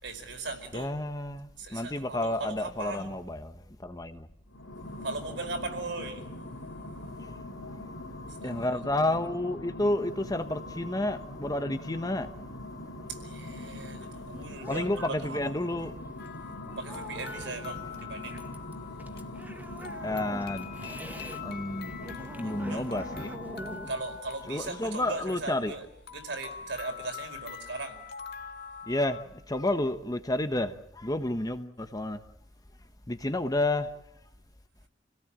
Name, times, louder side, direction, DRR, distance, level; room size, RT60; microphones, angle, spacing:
voice 1, 0.0-0.9 1.6-3.2 5.0-6.2 8.4-8.8 13.1-15.8 16.8-18.4 22.4-22.9 23.9-28.0, right 3 dB, 65° right, 4.8 m, -38 dB
voice 2, 0.7-4.3 8.4-12.3 14.7-15.9 20.0-21.1 21.4-22.1 22.4-23.4 24.5-25.7 28.9-32.2 33.1-33.9, left 1 dB, 20° left, 1.1 m, -31 dB
sound 1, 4.5-24.2, left 1 dB, 90° left, 2.9 m, -42 dB
sound 2, 13.3-21.4 21.7-25.5, equal, 10° right, 1.7 m, -46 dB
sound 3, 16.2-29.2, left 6 dB, 55° left, 1.9 m, -44 dB
29.0 x 18.0 x 8.9 m
head